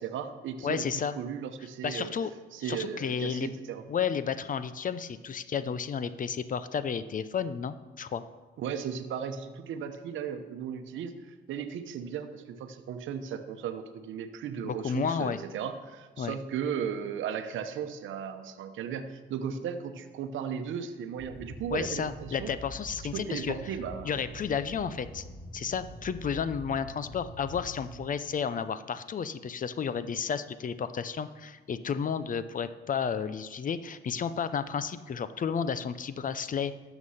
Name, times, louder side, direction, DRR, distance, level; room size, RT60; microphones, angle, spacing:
voice 1, 0.0-0.9 1.2-2.1 2.5-3.8 8.6-22.5 23.0-24.2, right 7 dB, 80° right, 7 dB, 0.9 m, -36 dB
voice 2, 0.6-1.2 1.8-2.3 2.6-3.5 3.9-8.2 14.6-15.4 16.2-16.3 21.7-23.6 24.0-25.2 25.5-36.7, left 7 dB, 40° left, 13 dB, 0.6 m, -32 dB
sound 1, 21.2-27.9, equal, 5° left, 2.5 m, -45 dB
12.5 x 7.1 x 5.7 m, 1.3 s
cardioid pair, 90°, 20 cm